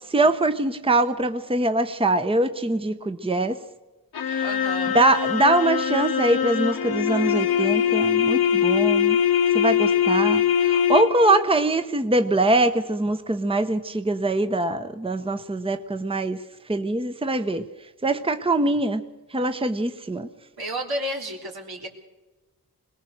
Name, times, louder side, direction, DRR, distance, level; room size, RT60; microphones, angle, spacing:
voice 1, 0.1-3.6 4.3-4.5 4.9-9.2 9.5-16.4 16.7-17.7 18.0-19.0 19.3-20.3, right 2 dB, 15° right, 0.9 m, -23 dB
sound 1, 4.1-11.4, left 8 dB, 85° left, 1.4 m, -22 dB
voice 2, 4.4-5.0 20.6-21.9, right 1 dB, 80° right, 3.6 m, -31 dB
22.0 x 19.5 x 6.6 m
cardioid pair, 70°, 36 cm